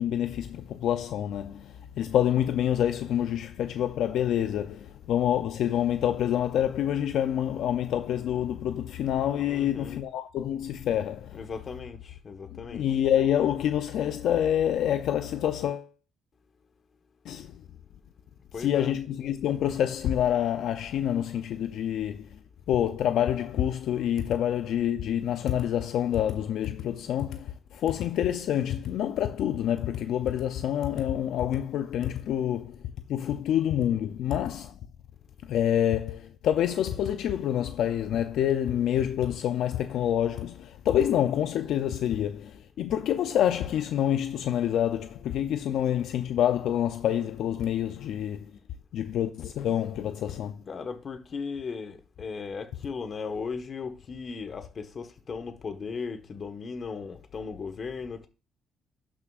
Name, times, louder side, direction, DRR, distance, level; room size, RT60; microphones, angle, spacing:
voice 1, 0.0-11.4 12.5-15.9 17.3-17.6 18.6-22.4 22.7-32.8 33.1-34.7 35.4-48.5 48.9-50.6, left 10 dB, 80° left, 0.5 m, -27 dB
voice 2, 9.5-10.0 11.3-12.9 18.5-18.9 48.5-48.6 50.7-58.3, left 5 dB, 45° left, 1.3 m, -37 dB
12.0 x 6.2 x 2.5 m
cardioid pair, 90°, 0 cm